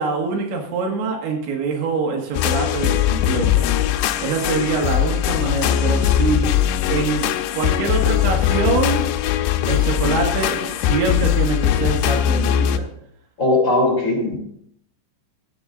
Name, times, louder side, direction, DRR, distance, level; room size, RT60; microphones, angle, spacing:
voice 1, 0.0-3.7 4.2-6.5 6.9-7.3 7.6-9.0 9.6-12.9, right 4 dB, 80° right, 1 dB, 4.2 m, -24 dB
sound 1, 2.3-12.8, left 11 dB, 85° left, 2.9 m, -20 dB
voice 2, 13.4-14.4, left 2 dB, 30° left, -2 dB, 3.6 m, -18 dB
16.0 x 7.7 x 3.9 m, 0.71 s
omnidirectional pair, 5.1 m